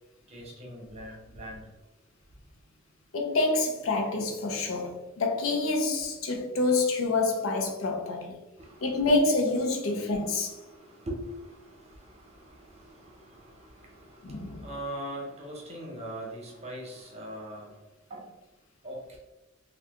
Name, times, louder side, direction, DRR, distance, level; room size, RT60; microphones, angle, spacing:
voice 1, 0.3-1.7 6.3-6.4 8.6-9.0 9.9-17.7 18.1-18.3 18.8-19.2, right 1 dB, 30° right, 0.8 m, -42 dB
voice 2, 3.1-8.4 8.8-10.5 14.2-14.7, left 2 dB, 85° left, 0.6 m, -27 dB
2.7 x 2.3 x 3.5 m
head